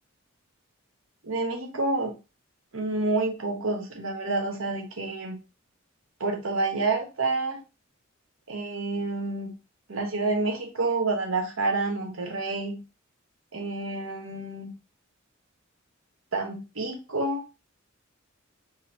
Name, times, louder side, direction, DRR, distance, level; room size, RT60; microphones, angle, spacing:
voice 1, 1.2-2.1 2.7-5.4 6.2-7.6 8.5-9.6 9.9-12.8 13.5-14.8 16.3-17.4, right 3 dB, 70° right, 3 dB, 1.1 m, -28 dB
3.6 x 3.2 x 3.0 m, 0.29 s
head